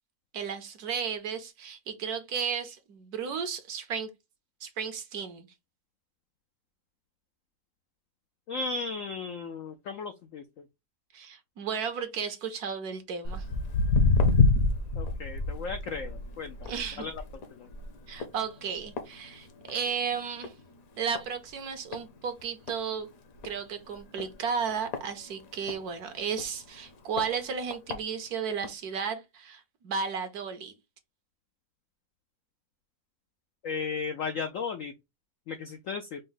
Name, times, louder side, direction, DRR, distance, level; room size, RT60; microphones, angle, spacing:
voice 1, 0.3-4.1 4.6-5.5 11.1-13.4 16.6-17.1 18.1-20.5 21.0-23.1 23.4-30.7, right 6 dB, 65° right, 1.1 m, -34 dB
voice 2, 8.5-10.6 15.0-17.2 17.5-17.7 33.6-34.9 35.5-36.2, left 4 dB, 75° left, 0.7 m, -35 dB
Walk footsteps, 13.2-19.9 20.2-20.6 21.1-21.2 21.9-22.0 22.4-22.5 22.7-22.8 23.3-23.5 24.2-25.8 26.4-26.5 27.2-27.3 27.7-28.0 28.6-28.7, left 3 dB, 60° left, 1.1 m, -27 dB
5.1 x 2.1 x 3.8 m
omnidirectional pair, 1.9 m